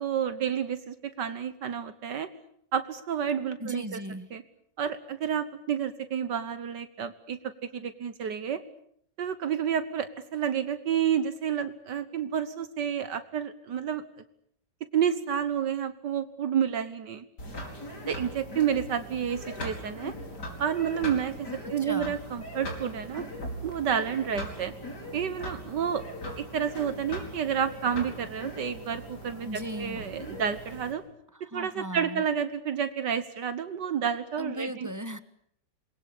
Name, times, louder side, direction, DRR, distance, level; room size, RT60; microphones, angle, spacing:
voice 1, 0.0-2.3 2.7-4.0 4.3-4.4 4.8-8.6 9.2-14.2 14.9-17.3 18.1-20.1 20.6-23.2 23.6-24.7 25.1-26.0 26.4-29.5 29.7-31.0 31.5-34.9, right 8 dB, 75° right, 11 dB, 1.9 m, -30 dB
voice 2, 3.6-4.3 21.6-22.2 29.4-30.1 31.3-32.2 34.4-35.2, right 1 dB, 10° right, 12 dB, 1.2 m, -37 dB
sound 1, 17.4-30.9, equal, 65° left, 5.7 m, -40 dB
27.5 x 22.0 x 8.6 m, 0.68 s
omnidirectional pair, 1.9 m